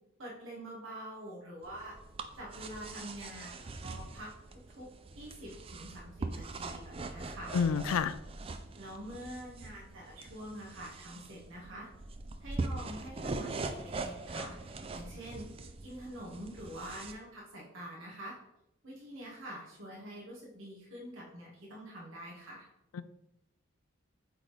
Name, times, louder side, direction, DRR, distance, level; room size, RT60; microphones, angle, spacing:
voice 1, 0.2-1.9 2.4-4.4 4.7-7.6 8.8-11.9 12.4-15.5 15.8-18.4 18.8-22.7, right 1 dB, 70° right, -5 dB, 1.7 m, -46 dB
sound 1, 1.6-17.1, right 3 dB, 25° right, 0.3 m, -42 dB
voice 2, 7.5-8.2 22.9-23.0, left 6 dB, 85° left, 15 dB, 0.4 m, -29 dB
8.2 x 3.8 x 3.3 m, 0.90 s
head